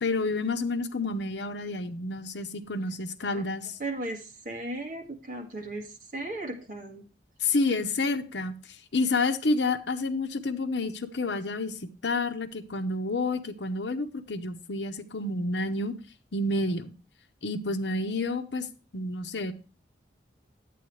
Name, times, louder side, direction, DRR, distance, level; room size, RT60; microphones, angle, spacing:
voice 1, 0.0-3.8 7.4-8.6 8.9-16.0 16.3-16.9 17.4-18.7 18.9-19.5, left 3 dB, 80° left, 9 dB, 0.8 m, -29 dB
voice 2, 3.8-7.0, right 2 dB, 50° right, 0 dB, 2.0 m, -36 dB
10.0 x 8.5 x 3.2 m, 0.33 s
head